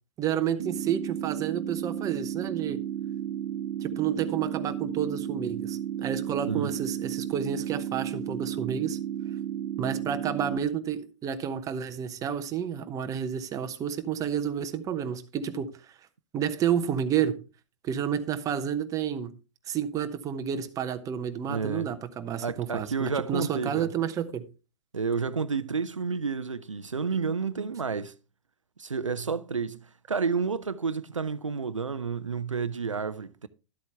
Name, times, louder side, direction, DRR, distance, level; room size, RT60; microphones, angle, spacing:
voice 1, 0.2-2.8 3.8-9.0 9.8-15.7 16.3-17.4 17.8-19.3 19.7-24.5, right 8 dB, 20° right, 0.9 m, -30 dB
sound 1, 0.6-10.6, right 10 dB, 55° right, 1.0 m, -33 dB
voice 2, 21.5-21.9 22.4-23.9 24.9-28.1 28.8-33.5, right 5 dB, 85° right, 0.6 m, -30 dB
12.0 x 8.1 x 3.3 m
figure-of-eight pair, 110°, 16 cm